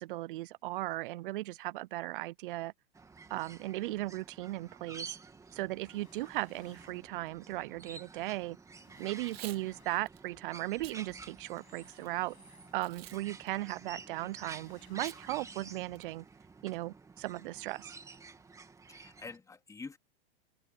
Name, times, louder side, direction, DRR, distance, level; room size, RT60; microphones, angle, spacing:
voice 1, 0.0-2.7 3.3-5.2 5.5-8.6 9.0-12.4 12.7-16.2 16.6-18.0, right 18 dB, 60° right, 0.5 m, -37 dB
sound 1, 2.9-19.4, right 4 dB, 10° right, 1.9 m, -51 dB
sound 2, 5.6-7.2 8.2-8.3 8.7-10.3 11.4-13.1 13.4-13.6 14.4-16.0 16.2-16.4, left 22 dB, 55° left, 6.0 m, -65 dB
Packing tape duct tape / Tearing, 9.1-9.6 10.1-10.2 10.7-11.0 11.5-12.1 12.8-13.2 13.5-13.6 15.0-15.2 15.6-15.7 15.9-16.3, right 12 dB, 75° right, 1.8 m, -49 dB
voice 2, 18.9-20.0, left 4 dB, 10° left, 3.5 m, -47 dB
hypercardioid pair, 135°, 31 cm